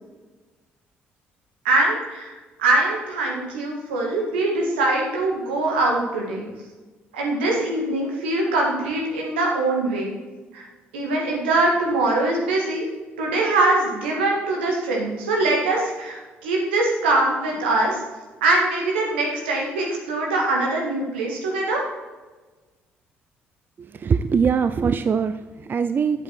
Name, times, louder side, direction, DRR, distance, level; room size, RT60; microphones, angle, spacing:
voice 1, 1.6-6.5 7.1-10.1 10.5-10.6 10.9-12.8 13.2-18.0 18.4-21.8, right 2 dB, 80° right, -1 dB, 1.9 m, -22 dB
voice 2, 23.8-26.2, right 6 dB, 35° right, 11 dB, 0.4 m, -22 dB
8.3 x 7.7 x 4.4 m, 1.2 s
hypercardioid pair, 50°, 6 cm